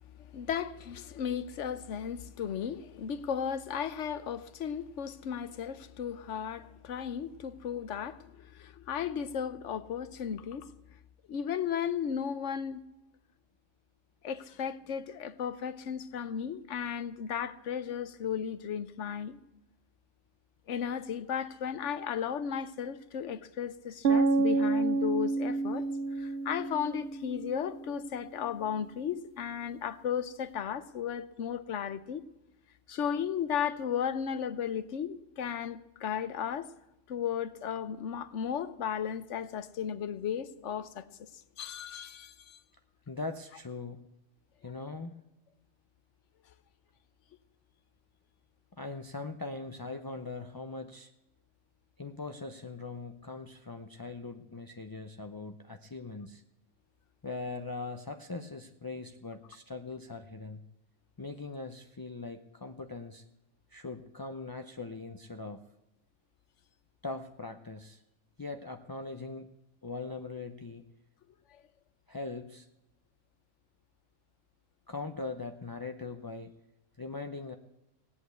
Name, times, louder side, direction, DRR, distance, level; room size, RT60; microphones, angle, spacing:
voice 1, 0.2-10.7 11.3-12.8 14.2-19.4 20.7-25.8 26.2-32.2 32.9-36.7 37.1-41.3 41.6-42.6, left 8 dB, 65° left, 1.1 m, -35 dB
sound 1, 24.0-28.0, right 3 dB, 55° right, 0.9 m, -29 dB
voice 2, 43.1-44.0 44.6-45.2 48.8-51.1 52.0-56.4 57.2-60.6 61.2-63.2 63.7-65.6 67.0-68.0 68.4-69.5 69.8-70.9 72.1-72.7 74.9-76.5 77.0-77.6, left 3 dB, 30° left, 0.4 m, -41 dB
17.5 x 8.4 x 8.2 m
omnidirectional pair, 1.4 m